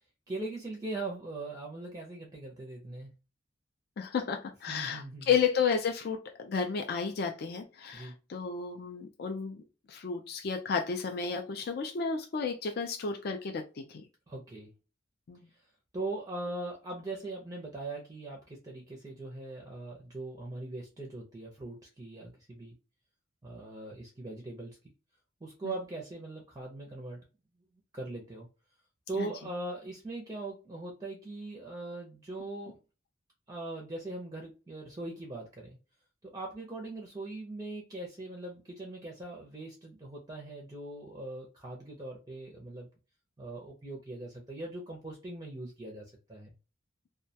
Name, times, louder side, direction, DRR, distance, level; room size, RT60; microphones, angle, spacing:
voice 1, 0.3-3.1 4.7-5.3 7.9-8.1 14.3-14.7 15.5-15.6 15.9-22.8 23.4-24.8 25.4-27.2 27.9-28.5 29.1-32.8 33.5-35.8 36.2-42.9 43.4-46.5, right 2 dB, 20° right, 0.4 m, -40 dB
voice 2, 4.0-9.6 9.9-14.0 15.3-15.4 29.2-29.3, left 6 dB, 50° left, 0.3 m, -32 dB
2.2 x 2.1 x 2.6 m
head